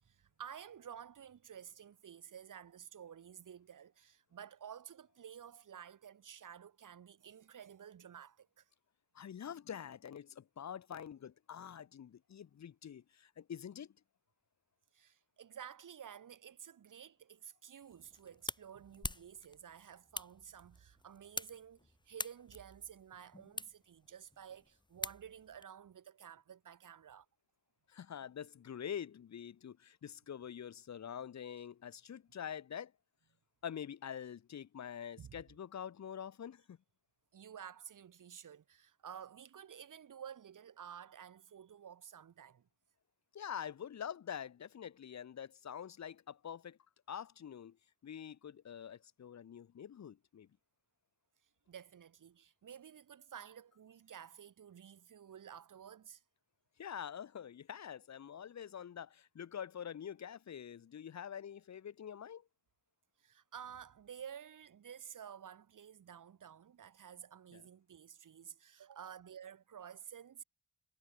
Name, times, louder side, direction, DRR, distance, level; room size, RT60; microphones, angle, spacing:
voice 1, 0.0-8.6 14.9-27.3 35.2-35.4 37.3-42.7 51.7-56.2 63.2-70.4, right 8 dB, 70° right, 4.9 m, -52 dB
voice 2, 9.1-14.0 27.9-32.9 33.6-36.8 43.3-46.8 47.1-47.8 48.0-50.5 56.8-62.5 67.5-67.7, left 8 dB, 55° left, 1.3 m, -46 dB
sound 1, 17.8-25.6, left 2 dB, 15° left, 3.3 m, -47 dB
wide cardioid pair, 155°, 32 cm